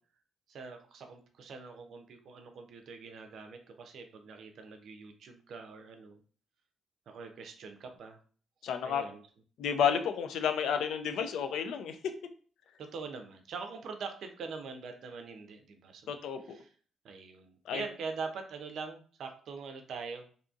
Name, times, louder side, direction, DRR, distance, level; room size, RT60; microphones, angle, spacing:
voice 1, 0.5-6.2 7.1-8.2 8.8-9.2 12.8-16.2 16.4-16.7 17.0-20.3, right 4 dB, 65° right, 5 dB, 0.5 m, -43 dB
voice 2, 8.6-9.0 9.6-12.0 16.1-16.6 17.7-17.8, left 7 dB, 75° left, 8 dB, 0.4 m, -31 dB
2.7 x 2.6 x 2.3 m, 0.44 s
cardioid pair, 90°, 0 cm